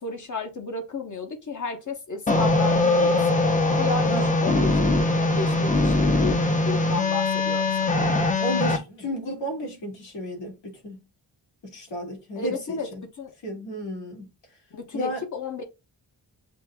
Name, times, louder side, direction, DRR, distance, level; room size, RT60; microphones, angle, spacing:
voice 1, 0.0-3.2 3.7-4.8 5.2-8.0 12.4-12.9 13.2-13.3 14.7-15.6, left 4 dB, 45° left, 1.0 m, -33 dB
sound 1, 2.3-8.8, left 2 dB, 20° left, 0.6 m, -21 dB
voice 2, 8.4-11.0 11.7-13.0 13.4-14.3 14.9-15.2, equal, 85° left, 2.2 m, -32 dB
7.2 x 2.5 x 2.3 m
wide cardioid pair, 120°, 42 cm